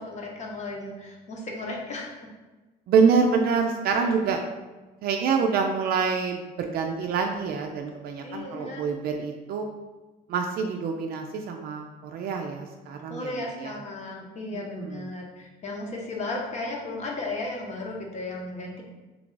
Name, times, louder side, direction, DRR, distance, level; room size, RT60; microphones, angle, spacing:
voice 1, 0.0-2.3 8.2-8.8 13.1-18.8, left 2 dB, 45° left, 0 dB, 0.8 m, -35 dB
voice 2, 2.9-4.4 5.0-9.7 10.3-13.7 14.5-15.1, right 5 dB, 65° right, 3 dB, 0.4 m, -26 dB
3.2 x 2.4 x 3.8 m, 1.2 s
cardioid pair, 110°, 17 cm